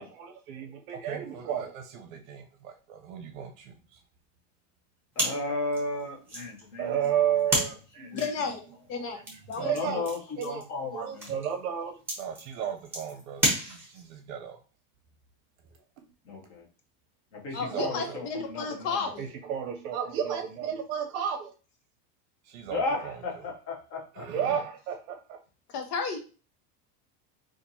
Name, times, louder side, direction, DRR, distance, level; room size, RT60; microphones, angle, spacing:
voice 1, 0.0-3.8 6.8-8.1 9.0-10.1 10.4-10.6 10.9-14.6 17.5-18.2 19.2-21.5 22.5-23.2 24.1-25.4, right 9 dB, 60° right, 4 dB, 0.6 m, -33 dB
sound 1, 5.1-14.2, right 1 dB, 5° right, 1.0 m, -34 dB
voice 2, 5.2-7.1 7.6-7.7 8.0-8.3 9.6-11.3 16.2-16.7 17.3-19.0 22.7-24.3, left 2 dB, 30° left, 0 dB, 0.8 m, -34 dB
voice 3, 8.1-8.6 8.9-9.2 9.5-9.7 17.5-19.3 25.7-26.2, left 5 dB, 80° left, 4 dB, 1.1 m, -32 dB
4.2 x 2.5 x 2.7 m, 0.35 s
supercardioid pair, 170°, 47 cm